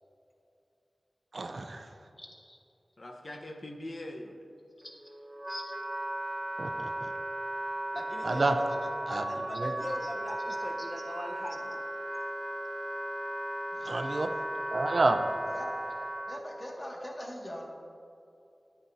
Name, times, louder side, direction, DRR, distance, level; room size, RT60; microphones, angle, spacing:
voice 1, 1.3-1.9 6.6-7.1 8.2-8.5 9.1-9.2 9.6-9.7 13.9-14.3 14.7-15.2, right 2 dB, 60° right, 7 dB, 0.6 m, -29 dB
voice 2, 2.2-2.6 4.8-4.9 5.5-5.7 10.8-10.9 13.7-14.4 15.5-15.9 16.3-17.7, equal, 35° left, -2 dB, 2.0 m, -43 dB
voice 3, 3.0-4.5 7.9-11.8, left 1 dB, 55° left, 2 dB, 1.0 m, -41 dB
Wind instrument woodwind instrument, 4.8-16.4, right 1 dB, 35° right, 0.8 m, -36 dB
13.0 x 9.5 x 2.8 m, 2.7 s
cardioid pair, 50°, 0 cm